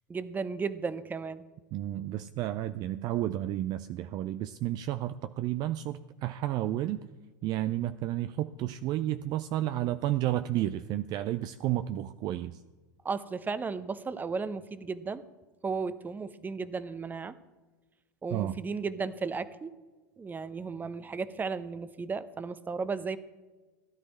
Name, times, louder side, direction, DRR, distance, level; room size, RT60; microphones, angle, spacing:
voice 1, 0.1-1.4 13.0-15.2 15.6-17.3 18.2-19.7 20.2-23.2, right 4 dB, 15° right, 14 dB, 0.8 m, -34 dB
voice 2, 1.7-7.1 7.4-12.6 18.3-18.6, right 13 dB, 40° right, 12 dB, 0.5 m, -31 dB
16.0 x 11.5 x 4.3 m, 1.3 s
figure-of-eight pair, 85°, 10 cm